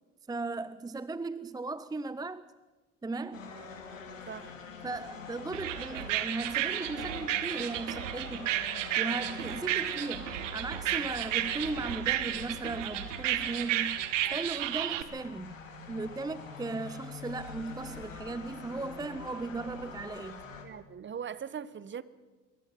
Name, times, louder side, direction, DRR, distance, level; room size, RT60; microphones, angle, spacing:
voice 1, 0.3-2.5 3.0-3.5 4.8-8.5 9.0-14.0 14.3-15.5 15.9-20.4, right 3 dB, 10° right, 0.6 m, -37 dB
sound 1, 3.3-20.6, left 5 dB, 90° left, 2.7 m, -45 dB
sound 2, 5.5-15.0, right 13 dB, 75° right, 1.3 m, -32 dB
voice 2, 20.6-22.0, right 7 dB, 30° right, 1.2 m, -40 dB
24.5 x 22.5 x 5.6 m
hypercardioid pair, 65°, 38 cm